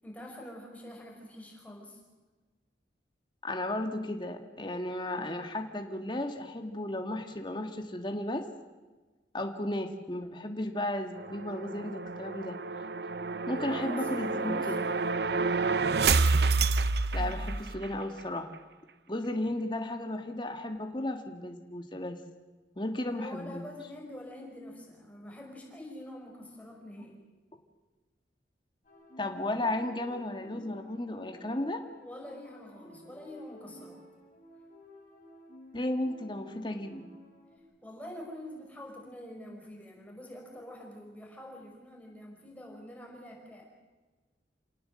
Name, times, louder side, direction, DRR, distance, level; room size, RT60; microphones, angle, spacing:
voice 1, 0.0-2.0 13.6-14.8 17.1-17.4 23.1-27.2 32.0-34.0 37.8-43.8, left 1 dB, 10° left, -1 dB, 5.5 m, -45 dB
voice 2, 3.4-8.5 9.3-12.6 13.5-14.8 17.1-18.5 19.1-22.2 22.7-23.6 29.2-31.8 35.7-37.0, left 1 dB, 25° left, 5 dB, 1.7 m, -34 dB
sound 1, 11.2-17.9, right 4 dB, 60° right, 0.8 m, -29 dB
sound 2, 28.8-37.6, equal, 40° left, 4.5 m, -54 dB
28.0 x 18.0 x 7.6 m, 1.3 s
head